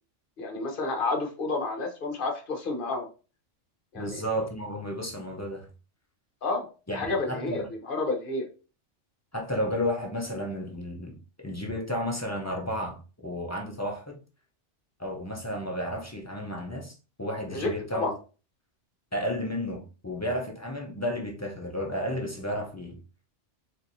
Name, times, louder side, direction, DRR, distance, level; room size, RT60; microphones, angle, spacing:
voice 1, 0.4-3.1 3.9-4.2 6.4-6.6 6.9-8.5 17.5-18.1, left 3 dB, 50° left, 0.9 m, -30 dB
voice 2, 3.9-5.7 6.9-7.7 9.3-14.2 15.0-18.1 19.1-23.0, equal, 25° left, 0.4 m, -32 dB
4.3 x 2.6 x 2.6 m
omnidirectional pair, 1.3 m